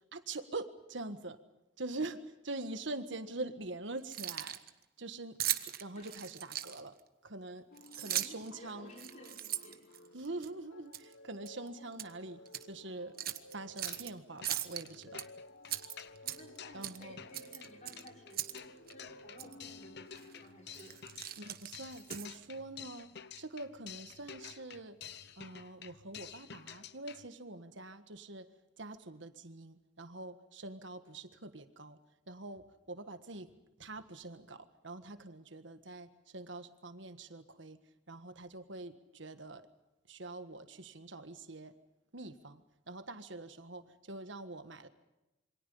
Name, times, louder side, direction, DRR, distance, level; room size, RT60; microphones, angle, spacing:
voice 1, 0.1-1.4 1.8-4.6 5.0-5.4 5.6-6.9 7.2-7.6 8.0-8.9 10.1-12.4 12.7-13.1 13.5-15.2 16.7-17.2 21.4-23.1 23.4-25.0 25.4-28.5 28.8-32.0 32.3-33.5 33.8-37.8 38.1-39.6 40.1-41.7 42.1-42.6 42.9-44.9, right 2 dB, 65° right, 10 dB, 1.5 m, -44 dB
Keys jangling, 4.0-4.7 5.4-7.0 7.8-8.5 8.9-10.5 10.9-11.1 11.5-12.1 12.5-12.6 13.2-14.1 14.4-15.2 15.7-16.6 16.8-17.0 17.3-18.6 18.9-19.0 19.4-19.5 20.1-20.4 20.7-22.5, right 12 dB, 50° right, 1.2 m, -39 dB
sound 1, 7.7-22.6, left 1 dB, 75° left, 1.7 m, -57 dB
voice 2, 7.8-9.8 16.2-21.0, left 1 dB, 35° left, 0 dB, 6.4 m, -56 dB
sound 2, 13.7-14.2 14.4-27.3, left 8 dB, 55° left, 1.0 m, -51 dB
27.5 x 24.0 x 5.6 m, 0.97 s
head